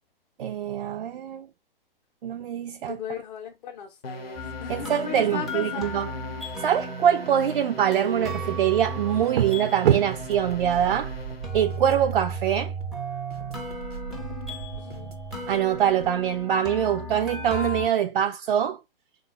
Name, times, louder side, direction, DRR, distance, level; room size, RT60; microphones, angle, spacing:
voice 1, 0.4-1.5 2.2-3.0 4.7-6.1 6.6-11.1 11.5-12.7 15.5-18.8, right 9 dB, 60° right, 0.4 m, -24 dB
voice 2, 2.8-6.0 14.8-15.1, left 7 dB, 45° left, 0.6 m, -37 dB
sound 1, 4.0-11.6, left 1 dB, 85° left, 0.7 m, -39 dB
sound 2, 4.4-17.9, right 2 dB, ahead, 0.4 m, -35 dB
sound 3, 10.1-16.4, right 6 dB, 85° right, 0.9 m, -40 dB
3.6 x 2.3 x 3.4 m
figure-of-eight pair, 115°, 29 cm